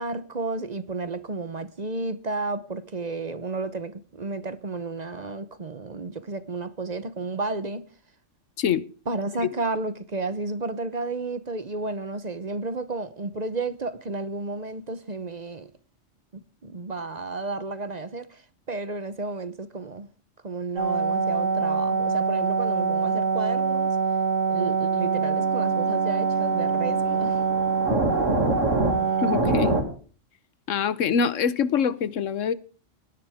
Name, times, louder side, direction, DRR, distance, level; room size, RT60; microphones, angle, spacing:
voice 1, 0.0-7.8 9.1-15.7 16.3-18.4 18.7-20.1 20.4-23.9 24.5-27.4, right 3 dB, 40° right, 0.9 m, -32 dB
sound 1, 20.8-29.8, right 4 dB, 85° right, 2.7 m, -24 dB
voice 2, 29.2-29.8 30.7-32.5, left 7 dB, 85° left, 1.2 m, -24 dB
18.5 x 10.5 x 3.5 m
omnidirectional pair, 1.3 m